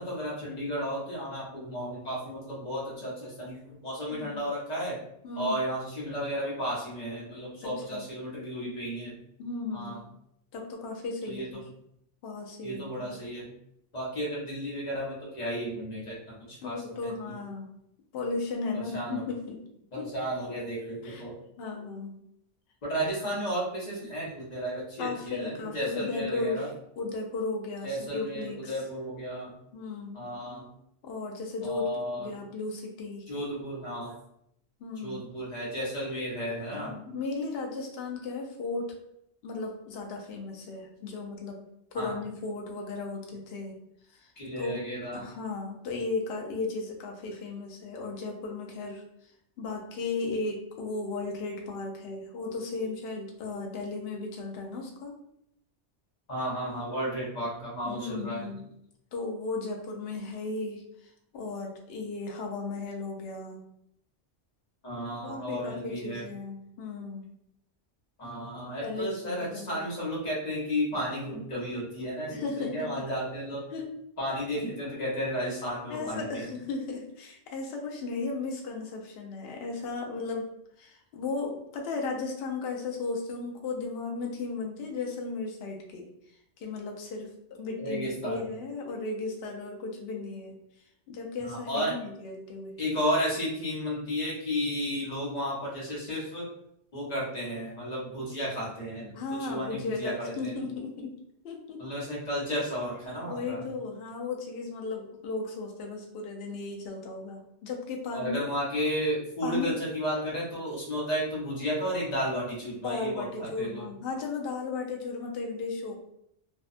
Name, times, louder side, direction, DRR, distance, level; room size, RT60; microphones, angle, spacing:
voice 1, 0.0-5.0 5.4-9.2 9.7-10.0 11.2-11.6 12.6-13.5 13.9-16.8 17.0-17.3 18.7-19.2 19.9-21.3 22.9-26.7 27.8-29.6 30.1-30.7 31.6-32.3 33.3-34.1 35.0-37.0 41.9-42.1 44.4-45.3 56.3-58.5 64.8-66.2 68.2-73.6 74.2-76.3 87.8-88.5 91.4-91.9 92.8-96.5 96.9-100.6 101.8-103.7 108.1-113.8, equal, 40° left, -5 dB, 1.0 m, -33 dB
voice 2, 5.2-5.6 7.6-8.1 9.4-10.0 10.5-11.5 12.2-13.2 16.6-17.7 18.1-19.6 20.0-20.1 21.0-21.3 21.6-22.1 25.0-26.7 27.0-28.8 29.7-30.3 31.0-33.3 34.8-35.2 36.7-38.9 39.4-41.6 41.9-43.8 44.1-44.8 45.1-49.3 49.6-55.2 57.8-58.7 59.1-63.7 65.2-67.2 68.8-69.9 72.3-73.1 73.7-73.9 75.9-80.5 80.8-86.1 86.6-90.6 91.1-92.8 99.1-101.2 101.4-101.9 103.2-108.4 109.4-109.7 112.8-116.0, left 3 dB, 65° left, 1 dB, 0.7 m, -35 dB
2.6 x 2.2 x 2.4 m, 0.74 s
omnidirectional pair, 1.2 m